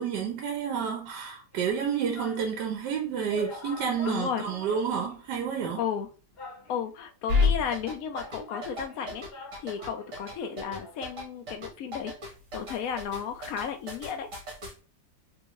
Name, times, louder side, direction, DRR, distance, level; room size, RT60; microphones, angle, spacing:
voice 1, 0.0-5.8, right 7 dB, 75° right, 1.3 m, -30 dB
sound 1, 1.5-2.5 2.9-3.0 3.3-5.3 5.6-5.7 6.4-7.1 7.8-11.0 11.3-11.4, left 3 dB, 45° left, 0.9 m, -45 dB
voice 2, 4.0-4.5 5.8-6.1 6.7-12.1 12.5-14.3, left 7 dB, 70° left, 0.8 m, -34 dB
sound 2, 7.3-14.7, left 4 dB, 50° right, 1.5 m, -29 dB
3.6 x 2.5 x 3.0 m
omnidirectional pair, 1.9 m